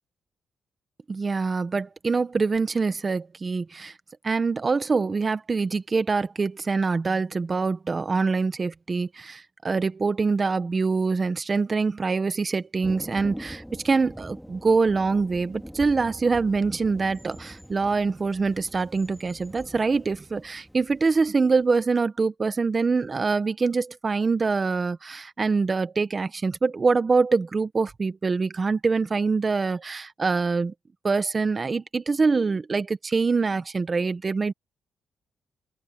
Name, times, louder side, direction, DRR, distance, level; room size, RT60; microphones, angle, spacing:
voice 1, 1.1-3.9 4.2-30.7 31.0-34.5, right 4 dB, 35° right, 1.4 m, -24 dB
Thunder, 12.8-21.8, equal, ahead, 2.6 m, -43 dB
cardioid pair, 95°, 0 cm